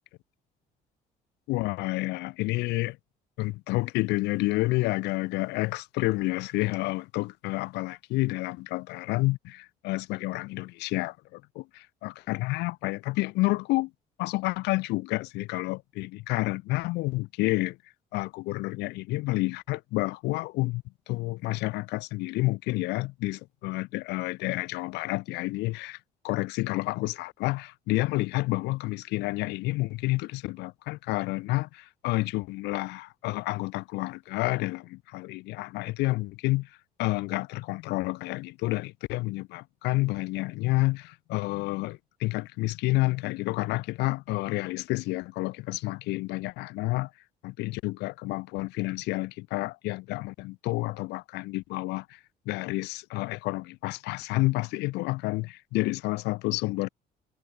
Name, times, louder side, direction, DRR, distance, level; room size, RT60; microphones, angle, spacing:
voice 1, 1.5-3.0 3.4-13.9 14.2-17.8 18.1-26.0 26.2-36.7 37.0-47.1 47.4-52.2 52.5-56.9, left 21 dB, 85° left, 0.5 m, -29 dB
cardioid pair, 110°, 17 cm